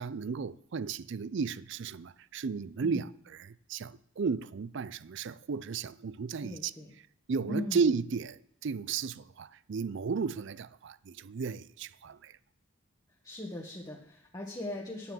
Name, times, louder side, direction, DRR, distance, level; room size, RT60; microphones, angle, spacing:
voice 1, 0.0-6.7 7.3-12.3, right 5 dB, 55° right, 0.4 m, -34 dB
voice 2, 6.4-6.9 7.5-7.9 13.2-15.1, left 1 dB, 15° left, 1.3 m, -39 dB
9.5 x 9.2 x 7.2 m
head